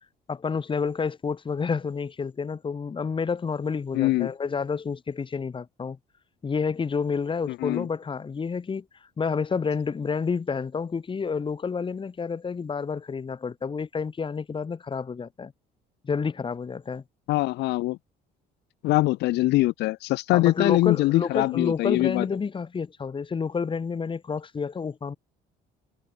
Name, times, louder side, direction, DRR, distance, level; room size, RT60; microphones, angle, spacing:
voice 1, 0.3-6.0 6.4-8.8 9.2-15.5 16.0-17.0 20.3-25.2, left 5 dB, 30° left, 3.5 m, -29 dB
voice 2, 3.9-4.3 7.5-7.9 17.3-18.0 18.8-22.3, left 18 dB, 85° left, 2.4 m, -23 dB
cardioid pair, 110°, 17 cm